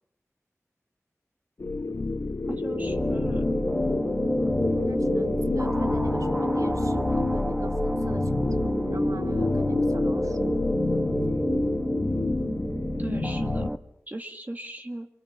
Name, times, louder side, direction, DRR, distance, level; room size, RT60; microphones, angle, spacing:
sound 1, 1.6-13.7, left 3 dB, 70° left, 1.1 m, -28 dB
sound 2, 2.2-13.8, equal, 10° right, 1.3 m, -29 dB
voice 1, 2.5-3.5 13.0-13.7 14.1-15.1, right 1 dB, 30° right, 2.2 m, -37 dB
voice 2, 4.8-10.5, right 3 dB, 85° right, 1.1 m, -41 dB
29.0 x 24.5 x 7.2 m
wide cardioid pair, 40°, 5 cm